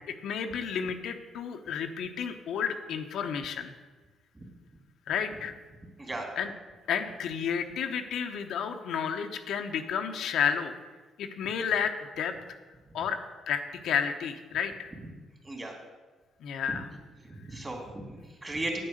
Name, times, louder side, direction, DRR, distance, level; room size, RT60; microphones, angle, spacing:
voice 1, 0.2-3.7 5.1-5.5 6.4-6.5 6.9-10.7 11.2-12.3 12.9-13.2 13.5-14.9 16.4-16.9, left 7 dB, 75° left, 5 dB, 0.9 m, -31 dB
voice 2, 17.2-18.8, right 2 dB, 20° right, 1 dB, 3.0 m, -36 dB
8.9 x 8.7 x 6.5 m, 1.3 s
cardioid pair, 90°, 0 cm